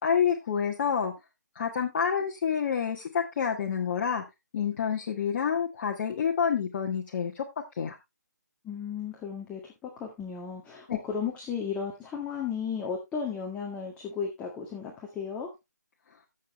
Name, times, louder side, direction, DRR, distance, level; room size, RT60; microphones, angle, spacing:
voice 1, 0.0-1.1 1.5-4.2 4.5-7.4 7.8-8.0 10.9-11.0, left 7 dB, 40° left, 0 dB, 1.6 m, -28 dB
voice 2, 8.6-15.5, left 6 dB, 10° left, 0 dB, 1.8 m, -34 dB
14.0 x 6.9 x 3.2 m, 0.22 s
figure-of-eight pair, 150°, 10 cm